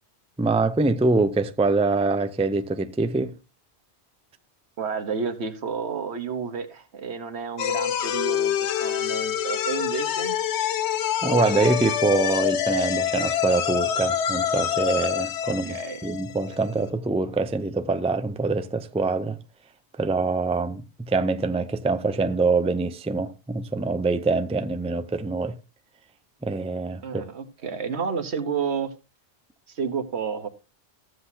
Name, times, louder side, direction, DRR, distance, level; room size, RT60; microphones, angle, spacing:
voice 1, 0.4-3.3 11.2-15.8 16.0-19.4 20.0-25.6 26.4-27.2, right 3 dB, 10° right, 0.4 m, -24 dB
voice 2, 4.8-10.4 15.4-16.1 27.0-28.9 29.7-30.5, right 6 dB, 75° right, 1.5 m, -31 dB
sound 1, 7.6-16.8, left 9 dB, 80° left, 1.0 m, -26 dB
14.5 x 7.8 x 2.8 m
omnidirectional pair, 1.1 m